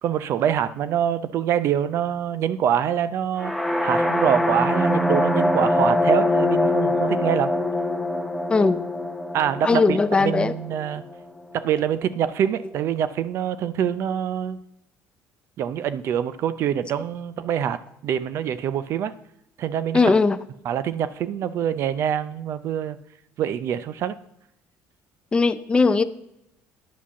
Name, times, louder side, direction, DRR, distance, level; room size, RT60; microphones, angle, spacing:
voice 1, 0.0-3.5 3.8-7.5 9.3-11.0 11.5-14.6 15.6-19.1 19.6-20.1 20.6-23.0 23.4-24.2, right 9 dB, 55° right, 0.5 m, -25 dB
sound 1, 3.4-11.2, left 1 dB, ahead, 0.8 m, -23 dB
voice 2, 8.5-8.8 9.6-10.5 19.9-20.4 25.3-26.0, left 4 dB, 20° left, 0.4 m, -19 dB
10.0 x 5.0 x 6.9 m
cardioid pair, 120°, 5 cm